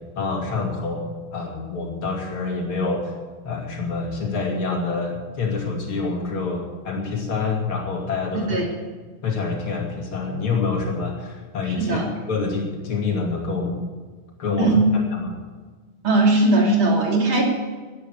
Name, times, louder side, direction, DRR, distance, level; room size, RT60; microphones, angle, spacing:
voice 1, 0.1-3.1 3.4-8.5 9.2-13.8 14.4-15.4, left 4 dB, 75° left, -1 dB, 3.4 m, -27 dB
voice 2, 14.6-14.9 16.0-17.4, right 2 dB, 65° right, -1 dB, 3.6 m, -18 dB
12.0 x 11.5 x 8.1 m, 1.4 s
omnidirectional pair, 2.4 m